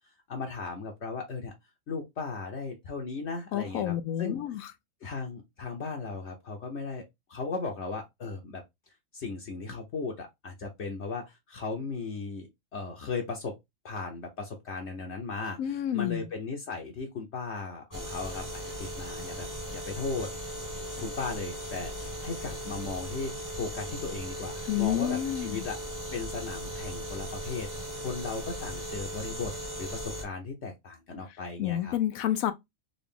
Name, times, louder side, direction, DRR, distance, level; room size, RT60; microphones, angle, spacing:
voice 1, 0.3-1.5 1.9-4.4 5.0-7.0 7.3-8.6 9.1-13.5 13.8-20.3 20.9-25.8 26.1-27.7 28.0-29.5 29.8-31.9, left 4 dB, 60° left, 1.0 m, -36 dB
voice 2, 3.5-4.7 15.6-16.3 24.7-25.7 31.6-32.5, left 11 dB, 85° left, 1.0 m, -29 dB
sound 1, 17.9-30.2, equal, 15° right, 0.9 m, -38 dB
3.9 x 2.3 x 3.4 m
omnidirectional pair, 1.4 m